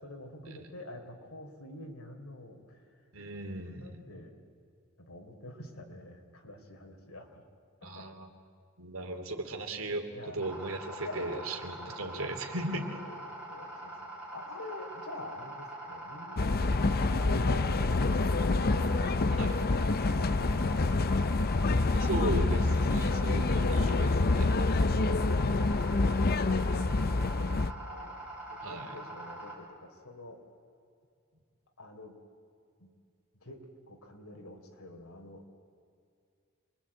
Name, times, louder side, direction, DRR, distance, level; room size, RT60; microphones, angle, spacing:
voice 1, 0.0-2.8 3.6-4.3 5.0-7.4 7.8-8.1 10.1-10.6 11.0-11.5 11.8-12.3 12.8-18.3 18.7-19.2 19.9-21.4 24.9-25.4 25.7-28.2 28.5-30.4 31.8-32.2 32.8-32.9 33.4-35.5, left 1 dB, 85° left, 3 dB, 3.7 m, -47 dB
voice 2, 3.1-4.1 7.8-8.3 8.8-13.0 19.4-19.5 21.9-24.7 28.6-28.9, right 2 dB, 70° right, 4 dB, 2.9 m, -37 dB
sound 1, 10.4-29.5, right 1 dB, 5° right, 6.8 m, -44 dB
sound 2, 16.4-27.7, left 3 dB, 45° left, 0.6 m, -27 dB
27.0 x 21.5 x 8.7 m, 2.3 s
head